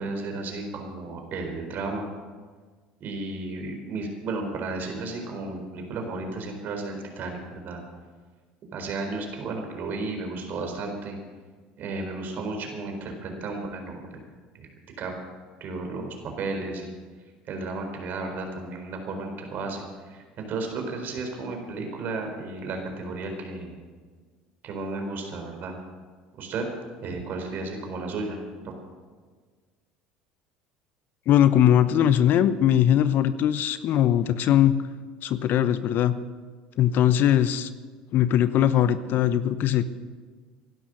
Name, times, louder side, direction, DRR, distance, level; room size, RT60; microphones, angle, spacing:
voice 1, 0.0-2.1 3.0-7.8 8.7-11.2 11.8-14.2 14.5-14.7 15.0-15.1 15.6-16.9 17.5-23.8 24.6-25.7 26.3-26.7 27.0-28.4, right 3 dB, 55° right, 4 dB, 4.1 m, -33 dB
voice 2, 31.3-34.8 35.2-36.1 36.8-37.7 38.1-39.8, left 10 dB, 55° left, 13 dB, 0.8 m, -20 dB
16.5 x 11.5 x 6.3 m, 1.5 s
hypercardioid pair, 75°, 4 cm